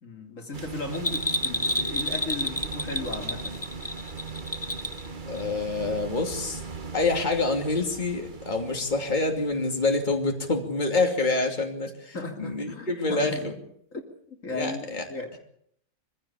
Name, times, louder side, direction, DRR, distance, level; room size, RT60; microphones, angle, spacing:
voice 1, 0.0-3.6 12.1-13.5 13.9-15.4, left 3 dB, 60° left, 3.2 m, -36 dB
sound 1, 0.5-10.6, right 4 dB, 35° right, 1.4 m, -39 dB
Bell, 0.9-5.1 5.4-5.5, left 1 dB, 10° left, 1.1 m, -29 dB
voice 2, 5.3-6.6 6.9-13.5 14.5-15.0, left 3 dB, 30° left, 2.9 m, -27 dB
24.0 x 15.5 x 8.6 m
omnidirectional pair, 1.6 m